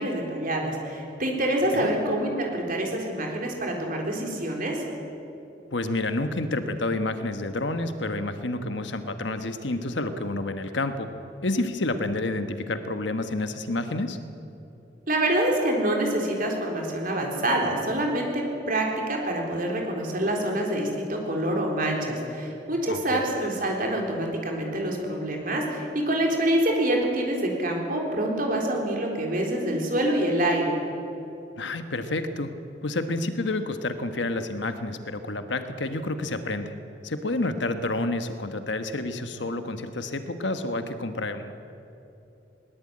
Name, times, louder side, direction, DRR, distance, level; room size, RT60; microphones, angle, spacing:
voice 1, 0.0-4.8 15.1-30.7, right 1 dB, 45° right, 0 dB, 3.9 m, -26 dB
voice 2, 5.7-11.1 11.4-14.2 22.9-23.2 31.6-32.5 32.8-36.7 37.0-41.5, left 2 dB, 70° left, 8 dB, 1.3 m, -29 dB
20.5 x 19.0 x 8.8 m, 2.9 s
head